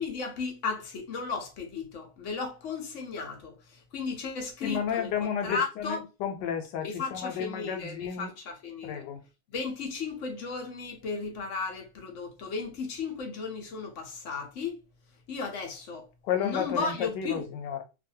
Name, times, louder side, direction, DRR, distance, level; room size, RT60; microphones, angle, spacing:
voice 1, 0.0-5.1 5.4-6.0 6.8-9.1 9.5-14.8 15.3-16.1 16.4-17.4, left 4 dB, 55° left, 1.0 m, -35 dB
voice 2, 4.6-8.3 8.8-9.2 16.2-17.8, left 8 dB, 80° left, 1.3 m, -32 dB
2.8 x 2.6 x 2.7 m
omnidirectional pair, 1.8 m